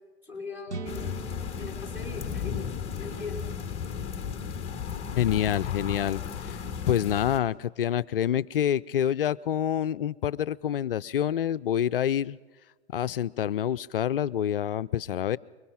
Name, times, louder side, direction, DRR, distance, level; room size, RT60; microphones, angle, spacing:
voice 1, 0.2-1.1 1.6-3.4, left 3 dB, 5° right, 1 dB, 3.8 m, -40 dB
sound 1, 0.7-4.5, right 4 dB, 80° right, 1.9 m, -43 dB
sound 2, 0.9-7.4, left 7 dB, 15° left, 1.2 m, -35 dB
voice 2, 5.1-6.6 6.9-12.4 12.9-15.4, left 10 dB, 55° left, 16 dB, 0.6 m, -27 dB
25.5 x 23.0 x 5.7 m, 1.3 s
figure-of-eight pair, 120°, 34 cm